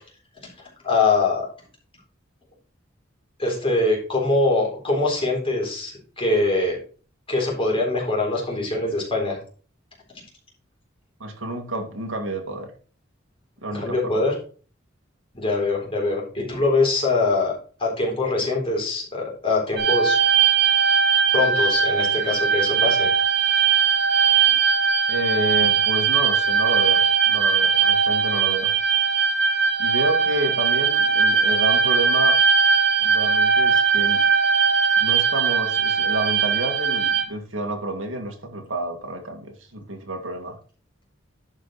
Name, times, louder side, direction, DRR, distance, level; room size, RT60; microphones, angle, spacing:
voice 1, 0.8-1.5 3.4-6.8 7.3-9.4 13.7-14.3 15.3-17.5 17.8-20.2 21.3-23.1, left 3 dB, 30° left, -1 dB, 3.8 m, -23 dB
voice 2, 11.2-12.7 13.6-14.2 16.4-16.5 25.1-28.7 29.8-32.4 33.0-34.3 35.0-40.6, right 1 dB, 85° right, 3 dB, 2.3 m, -29 dB
sound 1, 19.8-37.2, right 6 dB, 60° right, 1.9 m, -20 dB
11.0 x 5.2 x 4.3 m, 0.39 s
head